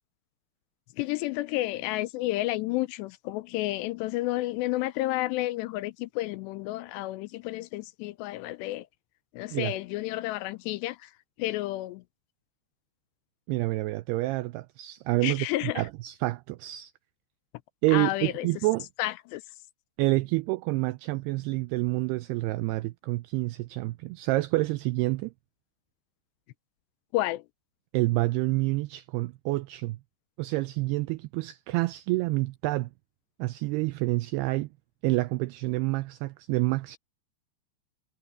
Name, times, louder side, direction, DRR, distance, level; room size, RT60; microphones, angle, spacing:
voice 1, 1.0-8.9 9.3-11.1 11.4-12.0 15.2-15.8 17.9-18.5 19.0-19.4 27.1-27.4, left 17 dB, 80° left, 2.6 m, -31 dB
voice 2, 13.5-16.9 17.8-18.9 20.0-25.3 27.9-30.0 30.4-32.9 33.4-34.7 35.0-37.0, right 20 dB, 90° right, 2.3 m, -28 dB
omnidirectional pair, 5.2 m